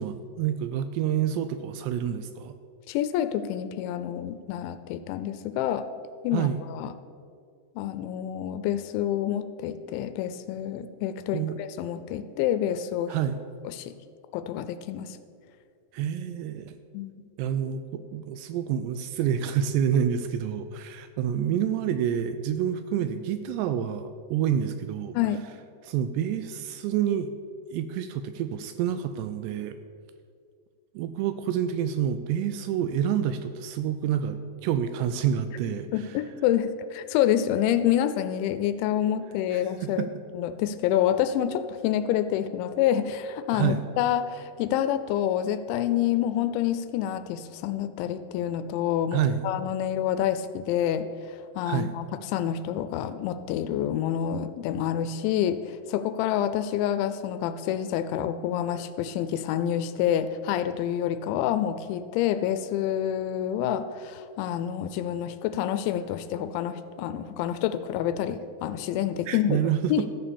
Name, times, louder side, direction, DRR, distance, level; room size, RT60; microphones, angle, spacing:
voice 1, 0.0-2.6 6.3-6.6 11.3-11.6 13.1-13.4 15.9-16.8 17.4-25.2 25.8-27.3 27.7-29.8 31.0-36.2 39.5-40.1 43.5-43.8 49.1-49.5 51.7-51.9 69.3-70.1, right 9 dB, 85° right, 10 dB, 2.5 m, -28 dB
voice 2, 2.9-5.9 6.2-6.9 7.8-13.2 13.7-13.9 14.3-15.2 16.9-17.2 25.1-25.4 35.9-40.1 40.3-70.1, left 10 dB, 85° left, 11 dB, 2.9 m, -28 dB
13.5 x 6.9 x 7.0 m, 2.3 s
omnidirectional pair, 5.3 m